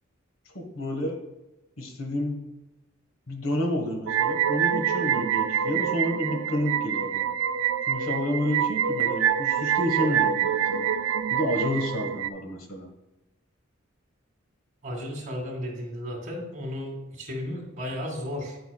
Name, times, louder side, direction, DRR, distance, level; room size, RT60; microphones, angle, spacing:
voice 1, 0.5-1.2 1.8-2.4 3.3-7.3 7.9-10.9 11.3-12.9, equal, 80° left, 4 dB, 1.5 m, -30 dB
sound 1, 4.1-12.3, right 8 dB, 70° right, 0.3 m, -26 dB
voice 2, 14.8-18.6, left 1 dB, 40° right, 0 dB, 2.3 m, -34 dB
9.4 x 8.1 x 2.4 m, 1.0 s
head